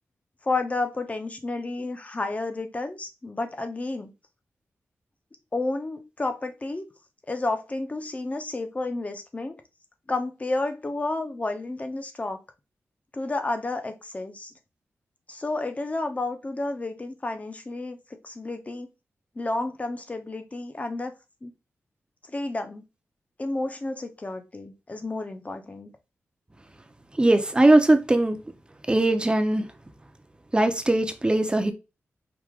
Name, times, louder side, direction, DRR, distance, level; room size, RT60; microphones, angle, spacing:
voice 1, 0.4-4.1 5.5-6.9 7.3-9.5 10.1-12.4 13.1-14.5 15.3-18.0 18.2-18.9 19.4-21.1 21.4-21.5 22.3-22.8 23.4-25.9, left 2 dB, 30° left, 0.8 m, -31 dB
voice 2, 27.2-28.4 28.9-29.7 30.5-31.7, right 2 dB, 20° right, 0.7 m, -20 dB
4.8 x 2.5 x 3.7 m
wide cardioid pair, 85°, 5 cm